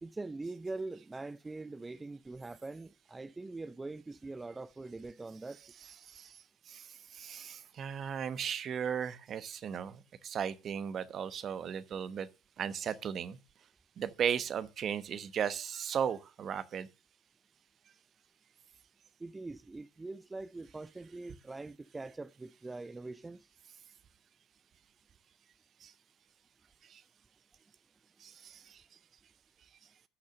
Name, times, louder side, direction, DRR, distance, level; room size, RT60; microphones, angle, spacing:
voice 1, 0.0-5.7 19.2-23.5 28.3-28.8, right 3 dB, 20° right, 0.5 m, -43 dB
voice 2, 6.0-6.3 6.7-12.3 12.6-13.4 14.0-16.9 25.8-25.9 26.9-27.0 28.2-28.8, right 8 dB, 45° right, 1.0 m, -36 dB
11.0 x 6.5 x 6.5 m
hypercardioid pair, 60°, 0 cm